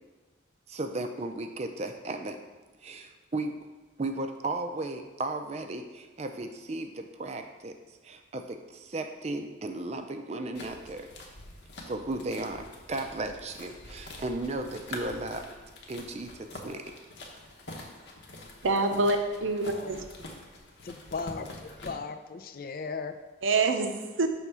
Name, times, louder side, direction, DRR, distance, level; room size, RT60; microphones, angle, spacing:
voice 1, 0.7-2.4 2.8-3.6 4.0-7.7 8.0-11.1 11.9-15.4 15.9-16.8, right 2 dB, 35° right, 0.4 m, -35 dB
sound 1, 10.5-21.9, left 1 dB, 65° left, 0.9 m, -45 dB
voice 2, 18.6-20.1 23.4-24.3, right 3 dB, 80° right, 0.6 m, -26 dB
voice 3, 20.8-23.2, left 4 dB, 50° left, 0.4 m, -37 dB
6.0 x 3.5 x 5.5 m
head